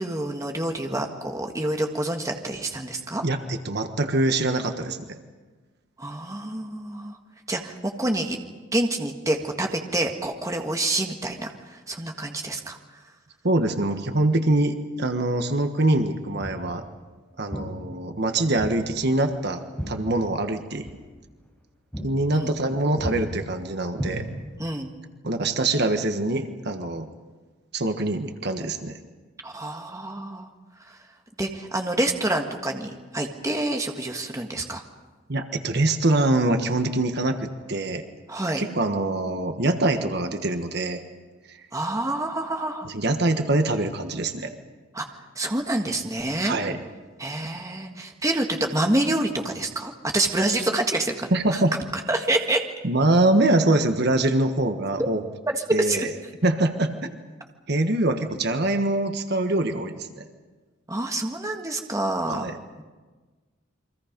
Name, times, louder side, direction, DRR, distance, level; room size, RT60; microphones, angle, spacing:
voice 1, 0.0-3.2 6.0-7.2 7.5-8.4 8.7-12.8 22.3-22.5 24.6-24.9 29.4-30.5 30.9-31.0 31.4-34.8 38.3-38.6 41.7-42.9 44.9-46.6 47.2-51.6 52.1-52.6 55.5-56.1 60.9-62.5, right 1 dB, 15° right, 3 dB, 1.7 m, -27 dB
voice 2, 3.2-5.0 13.4-16.8 17.4-20.9 22.0-24.3 25.2-27.1 27.7-29.0 35.3-38.0 38.6-41.0 41.5-41.6 42.8-44.5 46.4-46.8 51.3-51.7 52.8-55.2 55.7-56.1 56.4-57.1 57.7-60.2 62.3-62.6, right 2 dB, 55° right, 6 dB, 1.4 m, -24 dB
Walk footsteps, 16.4-16.7 17.5-17.7 18.6-18.8 19.1-20.6 20.8-21.0 21.4-21.6 21.9-22.1 22.4-22.7 23.0-23.2 23.9-24.6, equal, 5° left, 7.6 m, -33 dB
29.0 x 24.0 x 5.3 m, 1.3 s
head